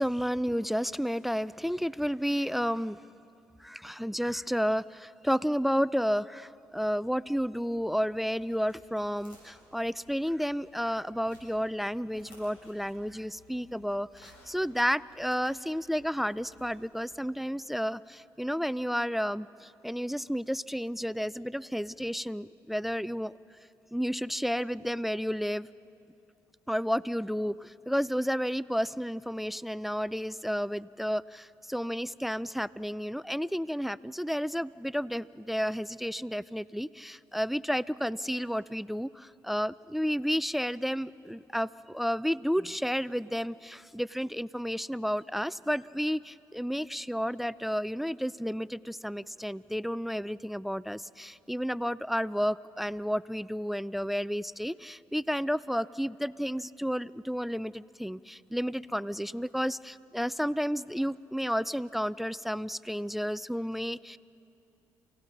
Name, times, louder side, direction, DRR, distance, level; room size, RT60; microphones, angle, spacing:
voice 1, 0.0-3.0 3.6-23.3 23.9-25.7 26.7-64.2, equal, ahead, 19 dB, 0.4 m, -31 dB
Walking Through Autumn Leaves, 6.4-17.5, left 1 dB, 90° left, 7.3 m, -60 dB
28.0 x 17.0 x 6.5 m, 2.8 s
supercardioid pair, 55°, 8 cm